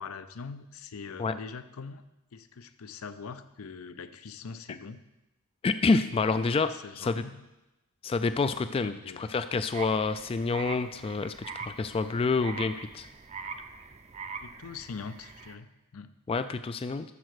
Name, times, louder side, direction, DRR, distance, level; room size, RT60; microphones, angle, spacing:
voice 1, 0.0-2.0 2.3-5.0 6.0-6.1 6.4-7.4 8.8-9.3 14.4-16.2, left 5 dB, 80° left, 12 dB, 0.6 m, -43 dB
voice 2, 5.6-7.2 8.0-13.1 16.3-17.1, left 4 dB, 25° left, 11 dB, 0.3 m, -28 dB
sound 1, 9.7-15.5, right 5 dB, 30° right, 0.6 m, -43 dB
12.5 x 4.6 x 6.4 m, 0.97 s
head